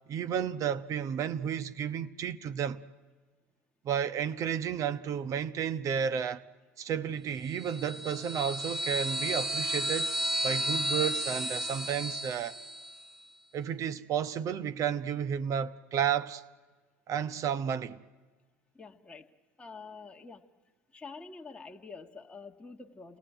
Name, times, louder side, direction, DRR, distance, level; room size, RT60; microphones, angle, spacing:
voice 1, 0.1-2.8 3.8-6.4 6.8-10.2 10.4-12.6 13.5-16.4 17.1-18.0, right 8 dB, 45° right, 1.0 m, -32 dB
sound 1, 7.6-13.0, right 1 dB, 5° right, 0.9 m, -33 dB
voice 2, 18.7-19.3 19.6-20.5 20.9-23.2, left 4 dB, 15° left, 1.5 m, -47 dB
28.5 x 19.0 x 9.1 m
hypercardioid pair, 75°, 8 cm